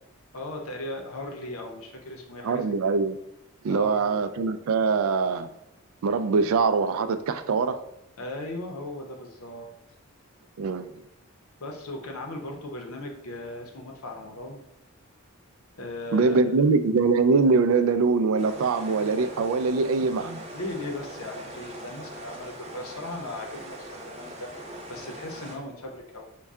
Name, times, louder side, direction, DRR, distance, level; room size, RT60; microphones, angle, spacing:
voice 1, 0.3-2.7 3.7-4.2 8.2-9.7 11.6-14.6 15.8-16.4 20.5-24.5 24.9-26.3, left 1 dB, 75° left, 0.7 m, -37 dB
voice 2, 2.4-3.2 3.6-5.5 6.0-7.8 10.6-10.9 16.1-20.4, right 4 dB, 70° right, 0.3 m, -23 dB
sound 1, 18.4-25.6, right 1 dB, 30° right, 0.7 m, -41 dB
5.3 x 2.2 x 3.5 m
head